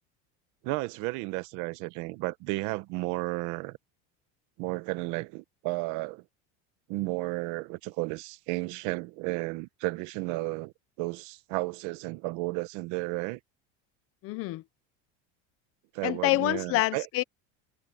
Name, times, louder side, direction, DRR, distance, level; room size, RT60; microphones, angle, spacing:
voice 1, 0.6-3.8 4.6-6.2 6.9-10.7 11.0-13.4 15.9-17.1, right 21 dB, 55° right, 1.1 m, -33 dB
voice 2, 14.2-14.6 16.0-17.2, left 19 dB, 40° left, 0.7 m, -27 dB
cardioid pair, 170°, 35 cm